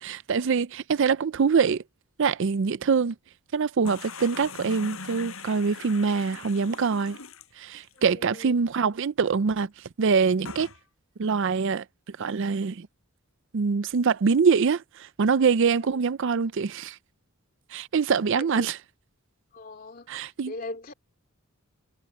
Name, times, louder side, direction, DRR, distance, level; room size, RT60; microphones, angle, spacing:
voice 1, 0.0-1.8 2.2-3.1 3.5-7.2 7.6-9.7 10.0-10.7 11.2-11.8 12.2-12.9 13.5-17.0 17.7-18.8 20.1-20.5, right 5 dB, 60° right, 0.4 m, -24 dB
sound 1, 3.8-8.0 8.4-8.5 8.7-8.8 10.4-10.8, left 4 dB, 70° left, 7.5 m, -41 dB
voice 2, 7.9-8.6 15.9-16.0 18.2-18.7 19.5-20.1 20.5-20.9, left 2 dB, 40° left, 2.7 m, -40 dB
head